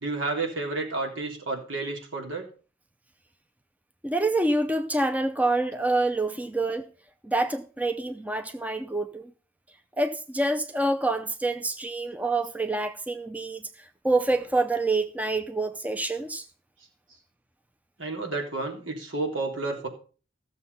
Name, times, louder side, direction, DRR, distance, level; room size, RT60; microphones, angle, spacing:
voice 1, 0.0-2.5 18.0-19.9, right 3 dB, 85° right, 3.5 m, -31 dB
voice 2, 4.0-6.9 7.2-9.3 10.0-13.6 14.0-16.4, right 2 dB, 10° right, 0.6 m, -27 dB
14.5 x 7.0 x 5.6 m
head